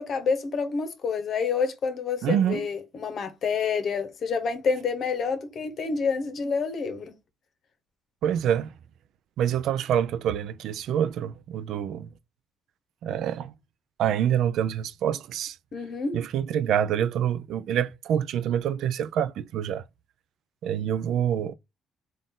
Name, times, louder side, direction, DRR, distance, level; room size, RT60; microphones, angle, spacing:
voice 1, 0.0-7.1 15.7-16.2, left 5 dB, 55° left, 1.0 m, -28 dB
voice 2, 2.2-2.7 8.2-8.7 9.4-12.1 13.0-13.5 14.0-15.6 16.1-19.8 20.6-21.5, right 9 dB, 75° right, 0.3 m, -26 dB
3.9 x 2.5 x 3.7 m
cardioid pair, 100°, 0 cm